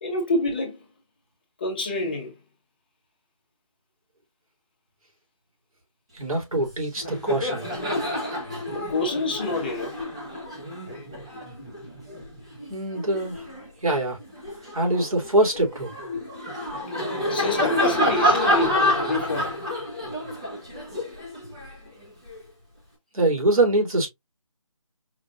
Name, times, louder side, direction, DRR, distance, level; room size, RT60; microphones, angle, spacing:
voice 1, 0.0-0.8 1.6-2.3 8.7-10.0 17.3-19.6, left 2 dB, 15° left, 1.1 m, -27 dB
voice 2, 6.1-7.7 12.7-13.5 13.8-14.2 14.7-15.9 23.1-24.1, right 2 dB, 80° right, 3.3 m, -23 dB
Laughter, 6.5-6.7 7.0-13.7 14.2-22.4, left 1 dB, 10° right, 0.7 m, -28 dB
5.0 x 3.3 x 2.4 m
figure-of-eight pair, 175°, 18 cm